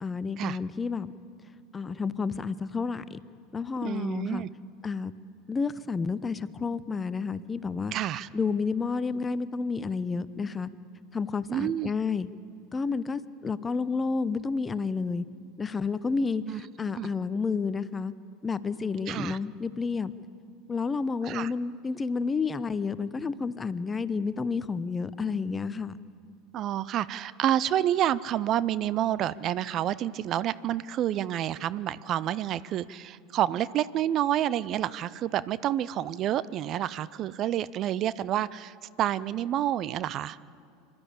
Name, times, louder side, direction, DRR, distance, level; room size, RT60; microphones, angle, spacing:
voice 1, 0.0-1.1 1.7-3.2 3.5-4.4 4.8-5.1 5.5-7.9 8.3-10.7 11.1-12.3 12.7-15.2 15.6-18.1 18.4-20.1 20.7-26.0, left 4 dB, 20° left, 16 dB, 0.7 m, -30 dB
voice 2, 3.8-4.5 7.9-8.3 11.5-11.9 16.5-16.6 16.9-17.1 19.1-19.4 21.2-21.5 26.5-40.4, right 11 dB, 45° right, 18 dB, 0.5 m, -29 dB
25.5 x 12.5 x 8.7 m, 2.3 s
hypercardioid pair, 80°, 0 cm